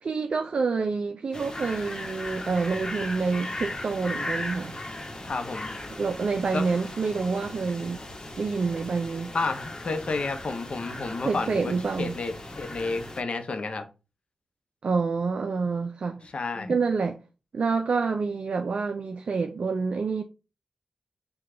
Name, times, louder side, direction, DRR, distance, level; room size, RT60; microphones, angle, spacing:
voice 1, 0.0-4.8 6.0-8.0 8.4-9.3 11.3-12.1 14.8-16.2 16.7-17.2 17.5-20.2, right 4 dB, 65° right, 0.4 m, -27 dB
sound 1, 1.3-13.2, left 1 dB, 35° left, 1.0 m, -37 dB
voice 2, 5.3-5.8 6.5-6.6 9.3-13.9 16.2-16.7, left 3 dB, 60° left, 0.7 m, -31 dB
4.7 x 2.3 x 3.7 m
cardioid pair, 45°, 2 cm